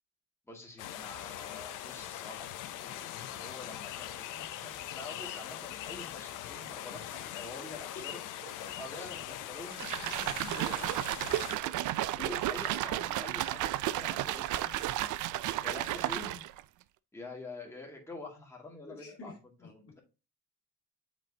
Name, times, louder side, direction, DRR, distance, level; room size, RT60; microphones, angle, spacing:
voice 1, 0.5-2.5 2.8-8.2 8.5-10.7 11.7-16.4 17.1-19.3 19.6-20.0, left 2 dB, 10° left, -2 dB, 2.3 m, -47 dB
sound 1, 0.8-11.6, left 12 dB, 90° left, 0.7 m, -42 dB
sound 2, 9.7-16.6, right 14 dB, 75° right, 0.5 m, -33 dB
voice 2, 10.4-10.9 11.4-11.7 12.2-12.4 18.9-20.0, left 1 dB, 50° left, 0 dB, 2.4 m, -48 dB
7.5 x 5.3 x 2.8 m, 0.30 s
cardioid pair, 90°, 30 cm